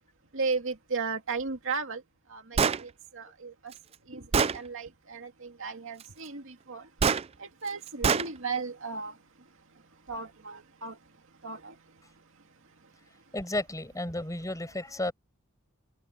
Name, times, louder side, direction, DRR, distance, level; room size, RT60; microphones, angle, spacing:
voice 1, 0.3-2.0 2.3-2.4 2.7-2.9 3.2-3.5 4.1-5.3 5.6-6.4 6.7-6.8 7.6-9.1 10.1-10.9 11.4-11.6, right 4 dB, 65° right, 2.4 m, -34 dB
Gunshot gunfire, 2.6-2.8 3.7-3.8 4.3-4.6 7.0-7.2 8.0-8.3, right 6 dB, 30° right, 0.4 m, -24 dB
voice 2, 13.3-15.1, left 1 dB, 15° left, 7.6 m, -33 dB
head